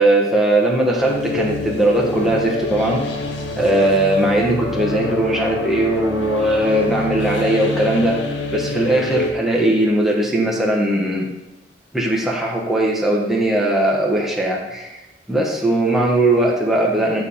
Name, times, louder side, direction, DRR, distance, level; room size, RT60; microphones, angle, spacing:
voice 1, 0.0-3.0 3.5-8.2 8.5-11.3 11.9-15.0 15.3-17.2, right 1 dB, ahead, -3 dB, 1.1 m, -19 dB
sound 1, 1.0-9.3, left 2 dB, 80° left, 0.9 m, -26 dB
9.0 x 3.4 x 5.5 m, 1.0 s
head